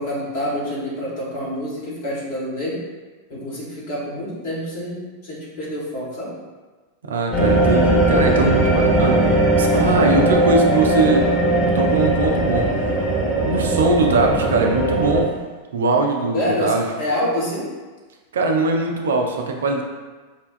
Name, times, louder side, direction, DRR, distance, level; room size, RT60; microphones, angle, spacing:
voice 1, 0.0-2.8 3.3-6.4 16.3-17.7, equal, 50° left, -6 dB, 1.3 m, -27 dB
voice 2, 7.0-13.0 13.4-15.3 15.7-16.9 18.3-19.8, right 3 dB, 65° right, 2 dB, 0.4 m, -21 dB
sound 1, 7.3-15.2, right 1 dB, 15° left, 1.1 m, -19 dB
4.8 x 2.2 x 2.5 m, 1.3 s
figure-of-eight pair, 90°, 0 cm